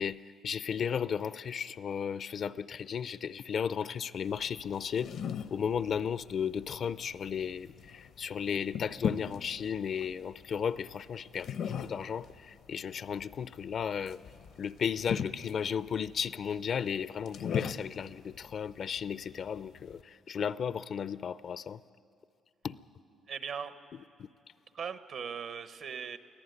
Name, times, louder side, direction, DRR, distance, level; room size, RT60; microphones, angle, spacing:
voice 1, 0.0-5.1 5.5-14.2 14.6-21.8 22.6-22.8 24.2-24.3, left 7 dB, 55° left, 17 dB, 0.5 m, -34 dB
sound 1, 4.2-20.0, left 8 dB, 75° left, 0.8 m, -41 dB
voice 2, 23.3-23.7 24.7-26.2, right 7 dB, 65° right, 11 dB, 1.0 m, -39 dB
23.5 x 15.0 x 9.4 m, 2.5 s
cardioid pair, 90°, 0 cm